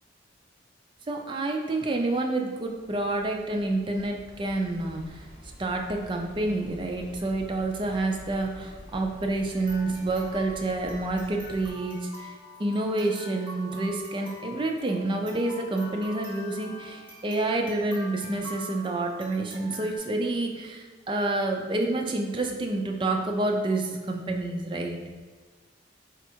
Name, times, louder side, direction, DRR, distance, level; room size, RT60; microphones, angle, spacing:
voice 1, 1.1-5.3 5.6-12.3 12.6-25.0, right 2 dB, 25° right, 2 dB, 0.4 m, -28 dB
sound 1, 2.6-11.7, equal, 50° left, 1.5 m, -47 dB
sound 2, 9.5-20.0, equal, 10° right, 1.3 m, -45 dB
4.2 x 2.4 x 4.4 m, 1.4 s
head